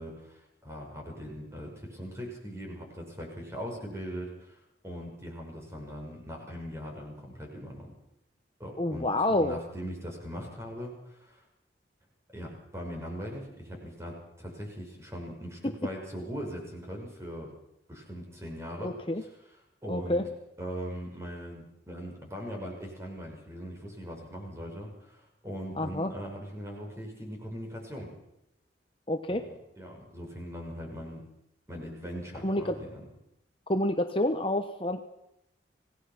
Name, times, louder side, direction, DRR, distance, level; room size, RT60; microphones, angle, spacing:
voice 1, 0.0-7.9 8.6-11.4 12.3-17.5 17.9-19.3 19.8-20.2 20.6-28.1 29.3-31.2 31.7-33.0, equal, 15° right, 0 dB, 6.2 m, -40 dB
voice 2, 8.8-9.6 18.8-19.2 19.9-20.2 25.8-26.1 29.1-29.5 32.4-32.7 33.7-35.0, left 1 dB, 30° left, 6 dB, 1.1 m, -28 dB
26.5 x 18.0 x 6.1 m, 0.81 s
head